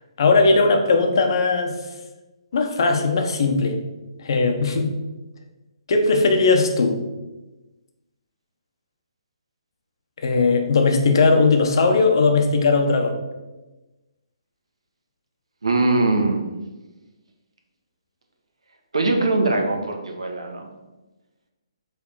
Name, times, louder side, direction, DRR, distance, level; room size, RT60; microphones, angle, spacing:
voice 1, 0.2-1.7 2.5-3.8 4.2-4.9 5.9-7.0 10.2-13.2, left 3 dB, 55° left, 4 dB, 1.0 m, -18 dB
voice 2, 15.6-16.5 18.9-20.7, right 2 dB, 85° right, 3 dB, 1.2 m, -21 dB
5.0 x 3.5 x 5.5 m, 1.1 s
hypercardioid pair, 145°, 3 cm